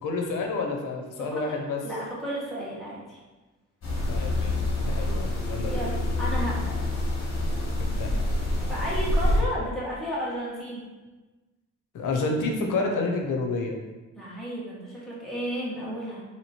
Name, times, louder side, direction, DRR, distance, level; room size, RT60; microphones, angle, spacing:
voice 1, 0.0-1.8 4.1-5.8 7.8-8.2 11.9-13.8, left 3 dB, 90° left, 2 dB, 0.6 m, -29 dB
voice 2, 1.3-3.2 5.6-6.6 8.6-10.8 14.1-16.2, equal, ahead, -8 dB, 1.4 m, -33 dB
sound 1, 3.8-9.4, left 1 dB, 55° left, 1.3 m, -26 dB
3.1 x 3.0 x 4.2 m, 1.2 s
cardioid pair, 100°, 30 cm